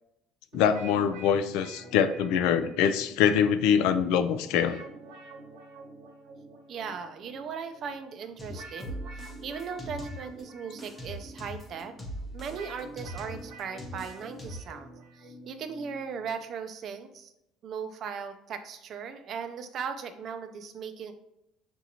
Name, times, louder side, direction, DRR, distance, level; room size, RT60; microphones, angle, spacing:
voice 1, 0.5-4.8, left 8 dB, 80° left, 11 dB, 0.3 m, -24 dB
sound 1, 0.5-16.5, right 2 dB, 70° right, 1.0 m, -48 dB
voice 2, 6.7-11.9 12.3-17.3 17.6-21.1, right 6 dB, 40° right, 8 dB, 0.4 m, -38 dB
sound 2, 8.4-10.4 10.8-14.8, equal, 15° left, 0.7 m, -41 dB
6.1 x 2.6 x 2.8 m, 0.83 s
cardioid pair, 160°, 0 cm